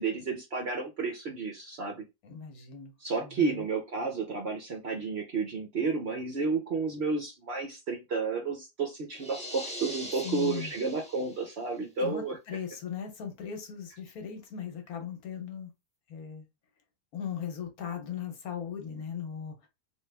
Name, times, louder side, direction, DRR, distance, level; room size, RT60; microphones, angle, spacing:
voice 1, 0.0-2.0 3.0-12.4, right 4 dB, 55° right, 0.7 m, -31 dB
voice 2, 2.2-2.9 3.2-3.6 10.2-10.7 12.0-15.7 16.1-16.5 17.1-19.7, left 8 dB, 65° left, 1.3 m, -38 dB
sound 1, 9.1-11.6, left 1 dB, 10° left, 0.4 m, -42 dB
2.9 x 2.8 x 3.3 m
omnidirectional pair, 1.7 m